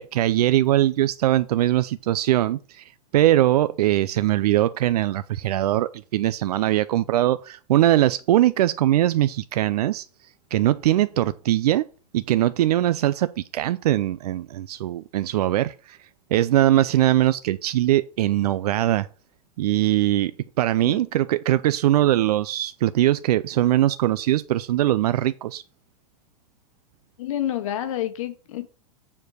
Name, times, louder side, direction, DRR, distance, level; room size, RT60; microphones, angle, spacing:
voice 1, 0.0-2.8 3.1-10.1 10.5-11.8 12.1-16.0 16.3-19.1 19.6-20.3 20.6-25.6, right 14 dB, 75° right, 0.5 m, -21 dB
voice 2, 27.2-28.7, left 12 dB, 55° left, 1.1 m, -29 dB
7.5 x 4.7 x 6.4 m
supercardioid pair, 170°, 20 cm